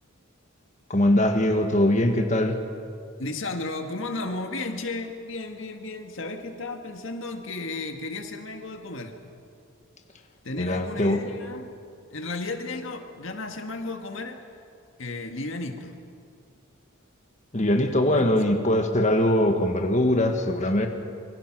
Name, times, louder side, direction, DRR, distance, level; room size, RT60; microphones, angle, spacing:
voice 1, 0.9-2.6 10.6-11.2 17.5-20.9, left 1 dB, 35° left, 4 dB, 1.6 m, -22 dB
voice 2, 3.2-9.1 10.4-11.7 12.1-14.4 15.0-16.0 18.1-18.3, left 2 dB, 65° left, 5 dB, 1.9 m, -34 dB
27.5 x 23.5 x 6.1 m, 2.4 s
head